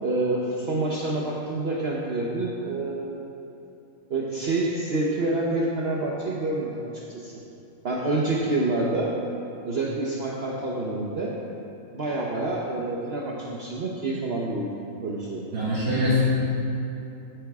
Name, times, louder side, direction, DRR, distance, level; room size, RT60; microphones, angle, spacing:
voice 1, 0.0-3.2 4.1-7.3 7.8-9.2 9.6-11.3 11.9-14.7 15.0-15.5, right 2 dB, 50° right, -3 dB, 1.1 m, -27 dB
voice 2, 15.5-16.2, left 1 dB, 80° right, -11 dB, 2.8 m, -23 dB
16.5 x 8.2 x 3.6 m, 3.0 s
omnidirectional pair, 1.5 m